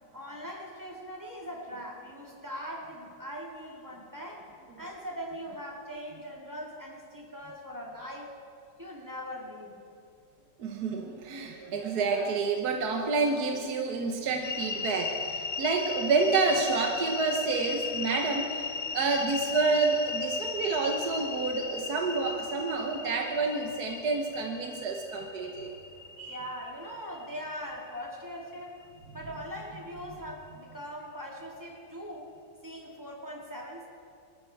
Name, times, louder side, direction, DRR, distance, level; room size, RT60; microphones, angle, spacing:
voice 1, 0.1-4.5 4.8-8.3 8.8-9.8 26.3-28.8 29.1-32.3 32.6-33.9, equal, 10° right, -2 dB, 2.1 m, -41 dB
voice 2, 10.6-25.7 26.2-26.4, right 4 dB, 65° right, 3 dB, 1.6 m, -29 dB
sound 1, 14.4-28.5, left 5 dB, 90° left, 0.4 m, -37 dB
20.5 x 14.0 x 4.6 m, 2.4 s
omnidirectional pair, 1.9 m